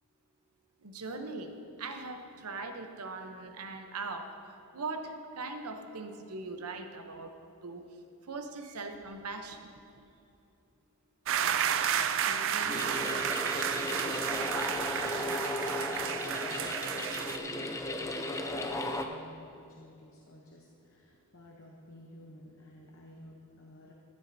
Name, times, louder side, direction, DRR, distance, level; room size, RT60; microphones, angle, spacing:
voice 1, 0.8-1.5 1.8-4.3 4.7-7.3 7.6-7.8 8.3-9.7, right 3 dB, 90° right, 6 dB, 0.8 m, -40 dB
sound 1, 11.3-17.4, right 8 dB, 60° right, 0.4 m, -31 dB
voice 2, 11.7-23.9, left 1 dB, 60° left, -1 dB, 0.9 m, -52 dB
sound 2, 12.7-19.1, left 1 dB, 15° left, 0.5 m, -35 dB
13.5 x 9.4 x 2.7 m, 2.7 s
head